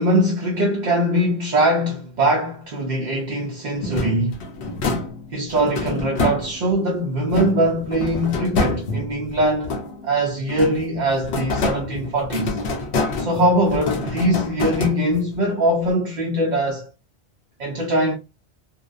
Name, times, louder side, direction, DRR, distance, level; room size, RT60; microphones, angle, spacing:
voice 1, 0.0-4.4 5.3-9.8 10.0-12.6 13.2-16.9 17.6-18.2, right 1 dB, 50° right, 0.6 m, -21 dB
sound 1, 3.8-6.8 7.3-10.1 10.5-15.4, left 3 dB, 75° left, 0.9 m, -27 dB
2.5 x 2.1 x 2.4 m
omnidirectional pair, 1.1 m